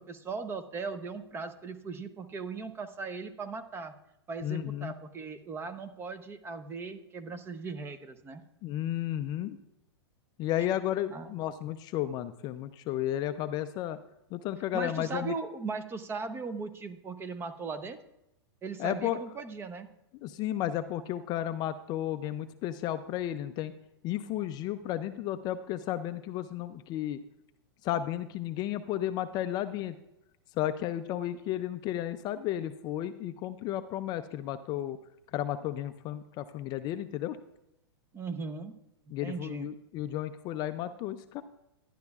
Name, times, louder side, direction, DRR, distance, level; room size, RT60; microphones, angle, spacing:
voice 1, 0.0-3.9 4.3-8.4 11.1-11.3 14.7-18.0 18.6-19.9 38.1-38.7 39.2-39.7, right 4 dB, 15° right, 11 dB, 0.6 m, -38 dB
voice 2, 4.4-4.9 8.6-9.6 10.4-14.0 14.3-15.3 18.8-19.2 20.2-23.7 24.0-27.2 27.8-29.9 30.6-35.0 35.3-37.4 39.1-41.4, left 12 dB, 30° left, 11 dB, 0.4 m, -33 dB
11.5 x 10.5 x 2.3 m, 0.85 s
hypercardioid pair, 130°, 14 cm